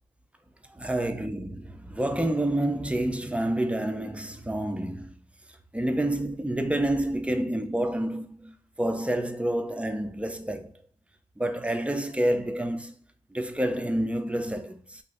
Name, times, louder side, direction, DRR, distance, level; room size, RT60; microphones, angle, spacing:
voice 1, 0.7-5.2 5.7-10.7 11.4-12.9 13.3-15.0, right 1 dB, 5° right, 0.4 m, -28 dB
2.6 x 2.0 x 3.3 m
supercardioid pair, 50°, 18 cm